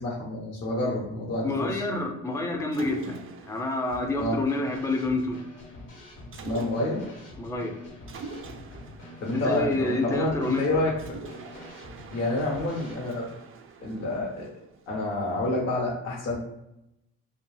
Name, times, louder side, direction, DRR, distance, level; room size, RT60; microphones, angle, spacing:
voice 1, 0.0-1.8 4.2-4.4 6.4-7.0 9.2-11.2 12.1-13.3 13.8-14.5 14.9-16.4, left 2 dB, 55° left, -4 dB, 0.8 m, -28 dB
voice 2, 1.4-3.2 3.4-5.4 7.4-7.8 9.3-10.6, left 2 dB, 10° left, 2 dB, 0.5 m, -28 dB
Mechanisms, 2.7-5.1 6.3-7.2 8.1-10.4 11.0-15.1, right 4 dB, 45° right, 0.4 m, -45 dB
Drum kit / Snare drum, 3.9-12.9, left 1 dB, 80° left, 1.1 m, -45 dB
2.3 x 2.2 x 3.2 m, 0.85 s
cardioid pair, 80°, 31 cm